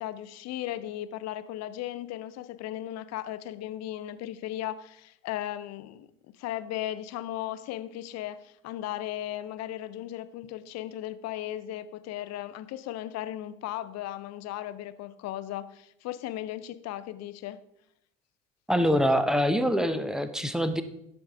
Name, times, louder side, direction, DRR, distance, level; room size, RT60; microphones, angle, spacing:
voice 1, 0.0-6.1 6.4-17.6, left 13 dB, 45° left, 14 dB, 0.6 m, -36 dB
voice 2, 18.7-20.8, equal, ahead, 10 dB, 0.6 m, -24 dB
10.5 x 6.1 x 3.5 m, 0.79 s
figure-of-eight pair, 60°, 38 cm